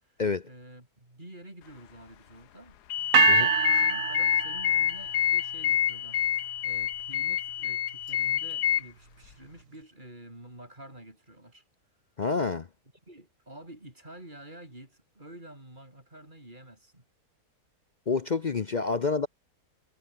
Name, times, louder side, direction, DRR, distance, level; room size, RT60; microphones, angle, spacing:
voice 1, 0.0-2.8 3.2-11.6 13.1-17.1 18.8-18.9, right 1 dB, 30° right, 5.6 m, -49 dB
sound 1, 2.9-8.8, left 11 dB, 85° left, 1.5 m, -27 dB
sound 2, 3.1-5.2, right 8 dB, 55° right, 1.4 m, -25 dB
voice 2, 12.2-12.7 18.1-19.3, left 4 dB, 45° left, 0.6 m, -28 dB
omnidirectional pair, 1.7 m